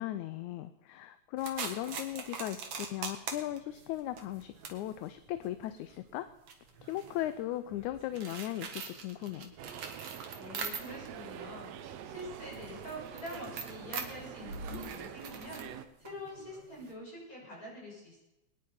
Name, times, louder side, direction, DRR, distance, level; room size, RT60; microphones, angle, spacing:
voice 1, 0.0-6.3 6.8-9.5, left 13 dB, 80° left, 12 dB, 2.0 m, -37 dB
sound 1, 1.4-11.2 11.5-16.9, right 5 dB, 55° right, 2.4 m, -44 dB
sound 2, 9.6-15.9, right 9 dB, 70° right, 1.8 m, -46 dB
voice 2, 10.3-15.7 16.0-18.2, left 1 dB, 25° left, -4 dB, 6.3 m, -45 dB
22.5 x 10.0 x 5.5 m, 0.95 s
omnidirectional pair, 3.5 m